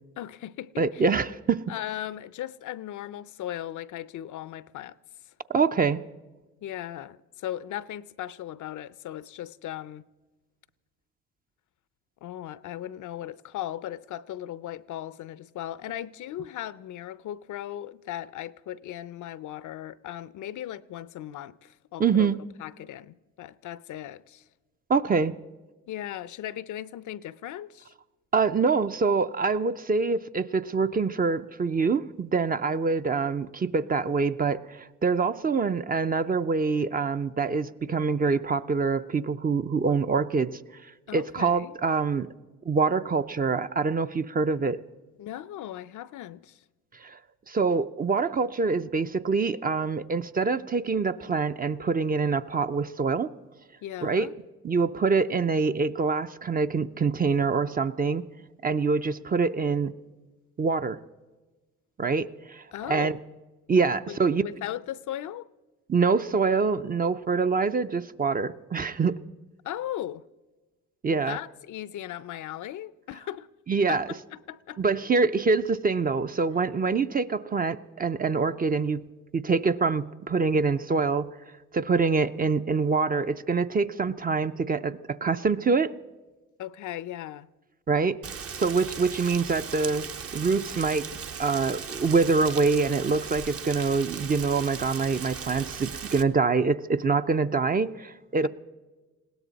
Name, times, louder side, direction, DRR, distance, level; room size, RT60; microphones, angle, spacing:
voice 1, 0.2-1.0 1.7-5.0 6.6-10.0 12.2-24.4 25.9-27.9 41.1-41.7 45.2-46.6 53.8-54.3 62.7-63.2 64.1-65.5 69.6-70.2 71.1-73.5 73.9-74.8 86.6-87.5, left 12 dB, 60° left, 0.6 m, -37 dB
voice 2, 0.8-1.7 5.5-6.0 22.0-22.4 24.9-25.3 28.3-40.5 41.1-42.3 42.7-44.8 47.0-47.2 47.5-53.3 54.0-54.3 54.6-58.2 58.6-59.9 60.6-61.0 62.0-63.1 63.7-64.4 65.9-69.2 71.0-71.4 73.7-74.1 74.8-79.0 79.3-81.3 81.7-85.9 87.9-88.2 88.6-90.1 90.3-91.1 91.4-98.5, right 4 dB, 25° right, 0.6 m, -25 dB
Rain, 88.2-96.2, right 6 dB, 45° right, 0.9 m, -38 dB
20.5 x 17.0 x 4.1 m
supercardioid pair, 80°, 34 cm